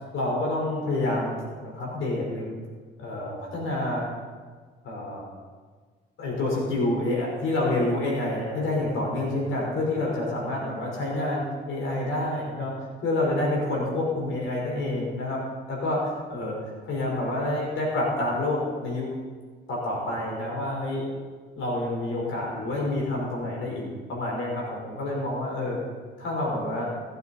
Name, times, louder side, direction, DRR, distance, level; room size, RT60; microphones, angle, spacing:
voice 1, 0.1-1.3 1.6-2.5 3.0-4.1 4.8-5.3 6.2-12.7 13.0-15.4 15.7-16.6 16.8-19.1 19.7-21.0 21.6-25.8 26.2-26.9, left 2 dB, 75° left, -2 dB, 4.2 m, -28 dB
19.0 x 9.6 x 4.2 m, 1.5 s
cardioid pair, 90°, 20 cm